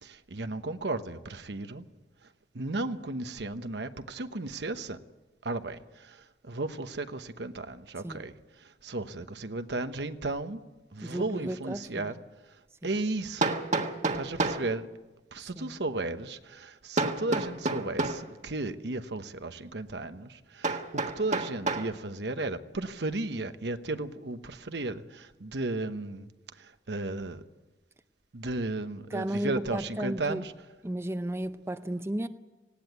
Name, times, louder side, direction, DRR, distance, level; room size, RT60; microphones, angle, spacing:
voice 1, 0.0-1.9 2.5-5.0 5.4-8.3 8.6-10.6 10.9-13.6 14.1-14.9 15.3-27.4 28.3-30.5, right 2 dB, 70° right, 1.0 m, -35 dB
voice 2, 11.0-12.1 12.8-12.9 15.6-15.7 29.1-30.4 30.8-32.3, right 1 dB, 15° right, 0.6 m, -34 dB
Hammer, 11.8-11.9 13.4-14.7 17.0-18.3 20.6-21.9, right 3 dB, 45° right, 1.5 m, -29 dB
19.0 x 17.0 x 9.4 m
head